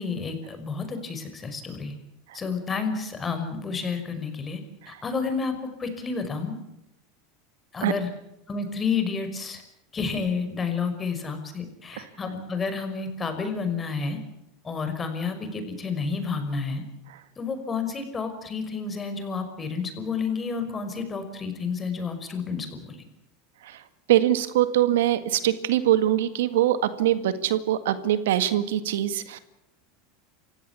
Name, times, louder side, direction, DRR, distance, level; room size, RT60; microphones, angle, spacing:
voice 1, 0.0-1.9 2.3-4.6 4.9-6.6 7.7-8.1 8.5-9.6 9.9-14.2 14.6-16.8 17.4-23.0, left 5 dB, 25° left, 8 dB, 5.7 m, -30 dB
voice 2, 24.1-29.4, right 12 dB, 85° right, 12 dB, 1.8 m, -23 dB
28.5 x 16.5 x 8.4 m, 0.83 s
supercardioid pair, 110°, 0 cm